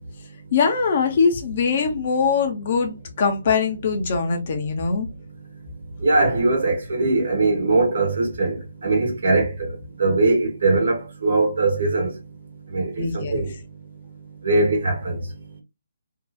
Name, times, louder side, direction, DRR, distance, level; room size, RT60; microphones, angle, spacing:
voice 1, 0.5-5.1 13.0-13.5, left 5 dB, 45° left, 0.7 m, -22 dB
voice 2, 6.0-8.6 8.8-9.7 10.0-12.1 12.7-13.5 14.4-15.1, right 2 dB, 60° right, 1.1 m, -21 dB
2.7 x 2.3 x 2.2 m
figure-of-eight pair, 140°, 0 cm